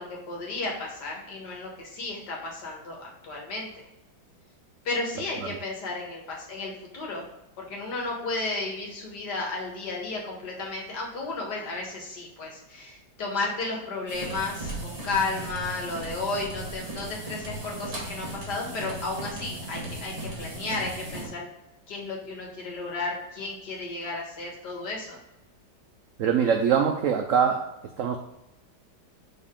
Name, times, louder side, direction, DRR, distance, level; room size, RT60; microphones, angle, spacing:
voice 1, 0.0-3.7 4.9-7.3 7.6-21.5 21.9-25.2, left 3 dB, 65° left, -1 dB, 2.0 m, -33 dB
sound 1, 14.1-21.3, right 2 dB, 40° right, 1.9 m, -37 dB
voice 2, 26.2-27.7 28.0-28.2, right 7 dB, 80° right, 4 dB, 0.7 m, -23 dB
6.5 x 4.0 x 3.7 m, 0.92 s
omnidirectional pair, 1.9 m